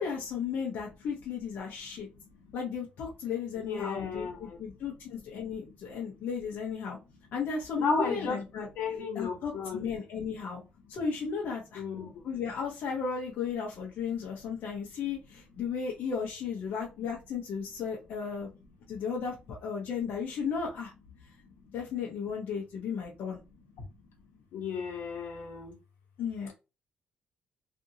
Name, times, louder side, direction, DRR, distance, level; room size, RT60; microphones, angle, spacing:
voice 1, 0.0-2.1 2.5-7.0 7.3-8.7 9.1-10.6 10.9-11.8 12.2-18.5 18.9-20.9 21.7-23.4 26.2-26.5, left 6 dB, 60° left, 0.8 m, -34 dB
voice 2, 3.5-4.6 7.8-9.8 11.7-12.1 24.5-25.7, left 4 dB, 85° left, 1.1 m, -34 dB
2.7 x 2.6 x 2.7 m
cardioid pair, 165°, 4 cm